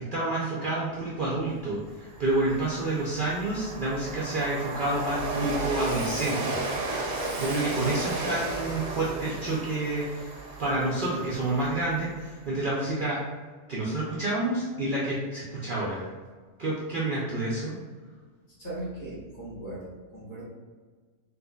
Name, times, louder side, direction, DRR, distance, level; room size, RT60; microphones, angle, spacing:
voice 1, 0.0-6.6 7.4-10.3 10.6-13.2 13.7-16.0 16.6-17.8, right 2 dB, 50° right, -6 dB, 0.6 m, -29 dB
Train, 1.4-1.5 1.8-12.3, right 2 dB, 70° right, 1.0 m, -34 dB
voice 2, 18.6-20.4, right 1 dB, 35° left, -9 dB, 1.4 m, -38 dB
4.0 x 2.7 x 2.3 m, 1.4 s
omnidirectional pair, 1.4 m